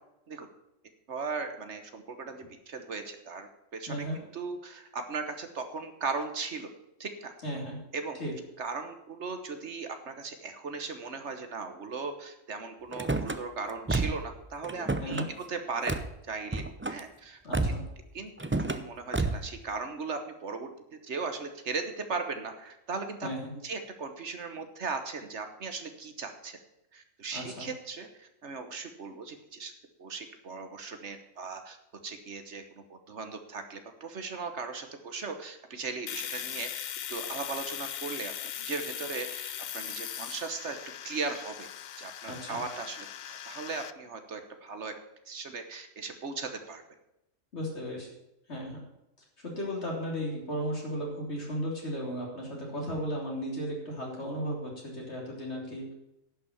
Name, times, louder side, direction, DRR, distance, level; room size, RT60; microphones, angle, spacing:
voice 1, 1.1-6.7 7.0-7.3 7.9-8.2 8.6-15.2 15.5-15.9 16.3-17.4 18.1-23.3 23.6-26.6 26.9-29.7 30.0-31.8 32.0-32.6 32.9-38.3 38.6-40.8 41.0-41.7 42.0-44.9 45.3-46.8, right 4 dB, 65° right, 7 dB, 1.4 m, -38 dB
voice 2, 3.9-4.2 7.4-7.8 8.2-8.3 15.0-15.3 17.4-17.8 23.2-23.5 27.3-27.7 42.2-42.6 47.5-48.1 48.5-48.8 49.4-55.9, equal, 60° left, -2 dB, 3.7 m, -35 dB
Car / Slam, 12.9-13.4 13.9-14.3 14.6-15.3 15.9-16.1 16.5-17.0 17.5-17.9 18.4-18.8 19.1-19.5, right 2 dB, 20° right, 0.3 m, -30 dB
Domestic sounds home sounds, 36.1-43.9, left 10 dB, 75° left, 0.4 m, -39 dB
11.0 x 6.0 x 8.5 m, 0.88 s
omnidirectional pair, 1.3 m